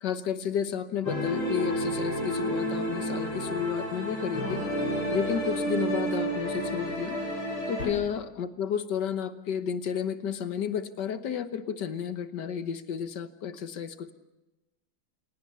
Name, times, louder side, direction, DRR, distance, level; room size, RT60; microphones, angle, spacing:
voice 1, 0.0-4.6 5.1-7.2 7.7-14.1, left 8 dB, 60° left, 11 dB, 1.7 m, -32 dB
sound 1, 1.0-7.9, equal, 80° left, 7.1 m, -30 dB
28.5 x 17.5 x 6.9 m, 1.0 s
omnidirectional pair, 2.3 m